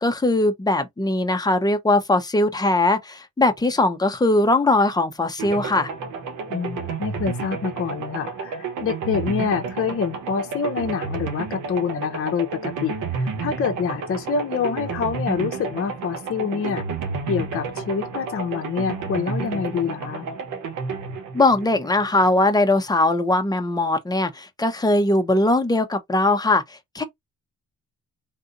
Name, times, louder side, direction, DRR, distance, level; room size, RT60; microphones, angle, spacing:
voice 1, 0.0-5.9 21.3-27.0, left 2 dB, 15° left, 0.8 m, -20 dB
sound 1, 5.4-22.3, right 4 dB, 85° right, 1.2 m, -31 dB
voice 2, 6.5-16.8 17.3-20.3, left 6 dB, 45° left, 0.8 m, -26 dB
3.7 x 2.6 x 2.6 m
cardioid pair, 90°, 30 cm